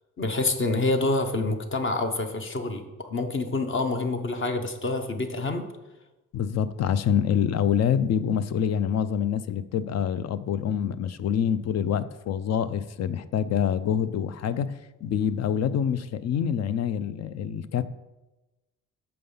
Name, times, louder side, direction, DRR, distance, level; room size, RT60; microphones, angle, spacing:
voice 1, 0.2-5.7, left 2 dB, 40° left, 6 dB, 1.0 m, -27 dB
voice 2, 6.3-17.8, left 8 dB, 60° left, 14 dB, 0.5 m, -26 dB
6.9 x 5.2 x 5.6 m, 1.1 s
cardioid pair, 90°, 30 cm